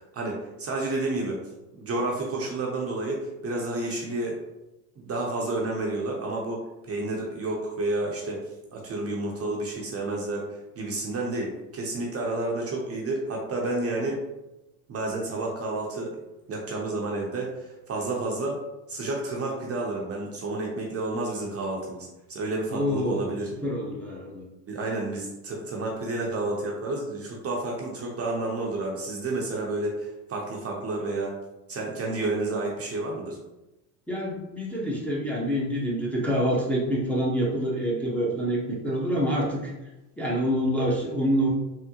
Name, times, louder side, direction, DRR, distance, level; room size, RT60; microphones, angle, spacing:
voice 1, 0.0-1.4 1.8-4.4 5.0-8.4 8.7-14.2 14.9-16.2 16.5-18.6 18.9-23.5 24.7-31.4 31.7-33.4, right 2 dB, 35° right, -1 dB, 0.6 m, -30 dB
voice 2, 22.7-23.3 23.6-24.5 34.1-39.7 40.2-41.5, equal, 5° left, -5 dB, 0.7 m, -26 dB
3.6 x 2.1 x 2.8 m, 0.97 s
supercardioid pair, 100°, 43 cm